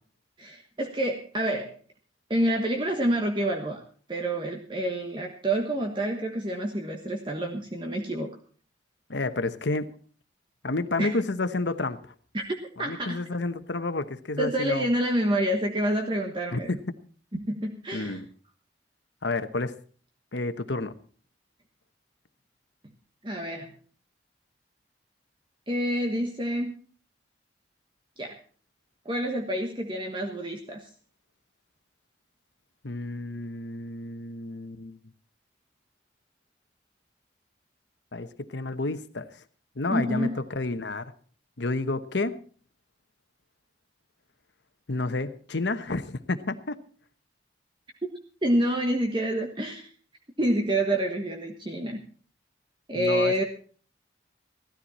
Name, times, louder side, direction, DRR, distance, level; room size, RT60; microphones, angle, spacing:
voice 1, 0.4-1.7 2.3-3.8 4.1-8.3 11.0-11.1 12.3-12.4 12.8-13.2 14.4-16.7 17.3-18.2 23.2-23.7 25.7-26.7 28.2-28.4 29.0-30.9 39.9-40.4 48.4-49.9 50.4-52.0 52.9-53.4, right 1 dB, 25° right, 2 dB, 1.3 m, -28 dB
voice 2, 9.1-9.9 10.6-12.1 12.8-14.9 16.5-16.6 17.9-18.3 19.2-19.8 20.3-20.9 32.8-35.0 38.1-39.4 39.8-41.1 41.6-42.4 44.9-46.8 52.9-53.4, left 2 dB, 75° left, 11 dB, 1.1 m, -30 dB
16.0 x 13.0 x 4.2 m, 0.43 s
head